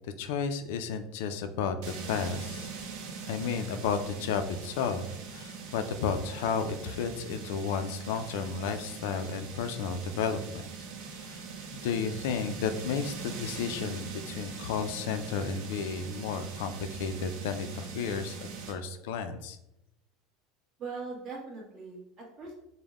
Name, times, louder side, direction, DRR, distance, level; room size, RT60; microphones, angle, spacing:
voice 1, 0.2-2.7 3.3-10.4 11.2-11.4 11.7-18.4 18.7-19.6, left 6 dB, 80° left, 8 dB, 0.4 m, -32 dB
sound 1, 1.8-18.7, right 5 dB, 60° right, 0.7 m, -42 dB
voice 2, 20.8-22.5, right 4 dB, 35° right, -2 dB, 1.1 m, -40 dB
5.2 x 2.1 x 3.5 m, 0.86 s
cardioid pair, 165°, 0 cm